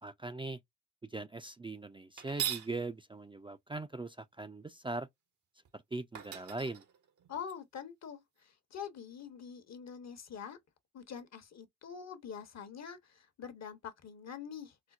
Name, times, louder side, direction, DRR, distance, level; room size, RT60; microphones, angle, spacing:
voice 1, 0.0-0.6 1.0-5.1 5.7-6.8, right 3 dB, 15° right, 0.4 m, -40 dB
sound 1, 2.2-2.7 5.6-5.7 6.1-7.5, right 9 dB, 70° right, 0.9 m, -39 dB
voice 2, 7.3-8.2 8.7-10.6 10.9-14.9, left 7 dB, 55° left, 0.9 m, -45 dB
4.3 x 2.0 x 2.3 m
supercardioid pair, 50°, 31 cm